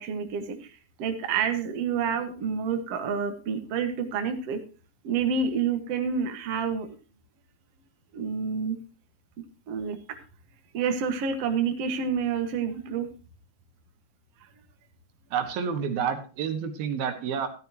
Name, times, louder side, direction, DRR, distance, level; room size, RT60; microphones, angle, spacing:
voice 1, 0.0-4.6 5.0-6.9 8.1-8.8 9.7-10.2 10.7-13.1, right 6 dB, 50° right, 6 dB, 2.2 m, -28 dB
voice 2, 15.3-17.5, right 7 dB, 75° right, 7 dB, 3.4 m, -29 dB
13.5 x 13.5 x 2.9 m, 0.35 s
omnidirectional pair, 4.3 m